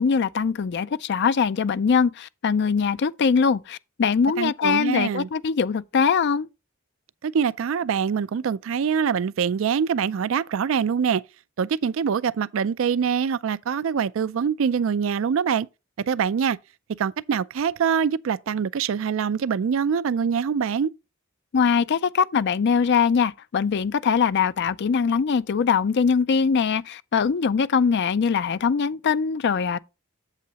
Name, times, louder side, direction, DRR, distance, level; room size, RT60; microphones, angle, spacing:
voice 1, 0.0-6.5 21.5-29.8, left 6 dB, 55° left, 0.4 m, -22 dB
voice 2, 4.4-5.3 7.2-11.2 11.6-15.7 16.1-16.6 17.0-20.9, right 7 dB, 70° right, 0.4 m, -24 dB
8.2 x 7.7 x 2.9 m
head